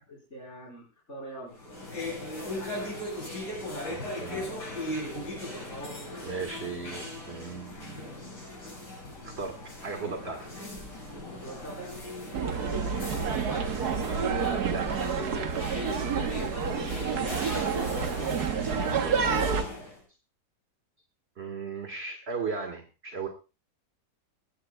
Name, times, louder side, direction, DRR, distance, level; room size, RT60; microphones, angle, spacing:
voice 1, 0.1-1.6 11.3-11.9 12.5-13.4 16.3-18.6, right 1 dB, 40° left, -4 dB, 4.9 m, -43 dB
sound 1, 1.5-20.0, left 1 dB, 75° left, 7.7 m, -38 dB
voice 2, 3.8-4.5 6.2-8.1 9.2-10.5 12.9-13.1 14.7-15.2 21.4-23.3, right 5 dB, 40° right, 6 dB, 1.8 m, -37 dB
sound 2, 12.3-19.6, right 6 dB, 65° right, 1.7 m, -29 dB
21.0 x 16.5 x 2.3 m, 0.32 s
omnidirectional pair, 1.8 m